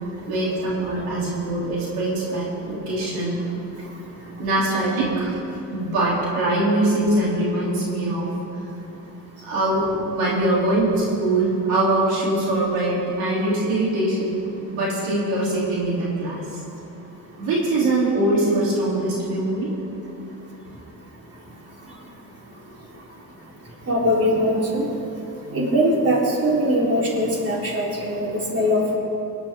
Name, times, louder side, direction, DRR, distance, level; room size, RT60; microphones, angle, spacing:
voice 1, 0.2-3.4 4.4-5.3 5.7-8.3 9.4-14.4 14.7-16.6 17.4-19.7, right 2 dB, 90° right, -6 dB, 3.4 m, -22 dB
voice 2, 23.9-24.8 25.5-29.0, equal, 40° right, -4 dB, 3.9 m, -21 dB
21.5 x 11.0 x 3.7 m, 2.9 s
cardioid pair, 85°, 35 cm